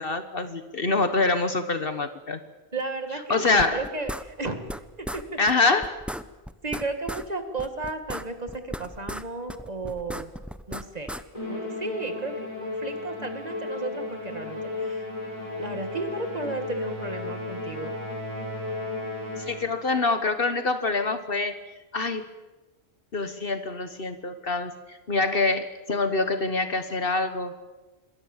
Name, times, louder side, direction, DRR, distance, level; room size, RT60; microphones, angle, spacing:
voice 1, 0.0-2.4 3.3-3.8 5.4-6.0 19.4-21.6 21.9-22.2 23.1-27.5, left 3 dB, 60° left, 9 dB, 1.5 m, -25 dB
voice 2, 2.7-4.7 5.0-5.4 6.6-10.3 10.7-11.2 11.5-15.1 15.6-18.0, right 2 dB, 40° right, 7 dB, 2.4 m, -34 dB
sound 1, 3.6-4.8 5.0-5.2 5.5-5.6 5.8-7.3 7.6-9.2 9.5-11.2, equal, ahead, 0.8 m, -35 dB
Musical instrument, 11.3-19.8, left 2 dB, 30° left, 7.2 m, -34 dB
27.0 x 21.5 x 7.4 m, 1.2 s
omnidirectional pair, 1.1 m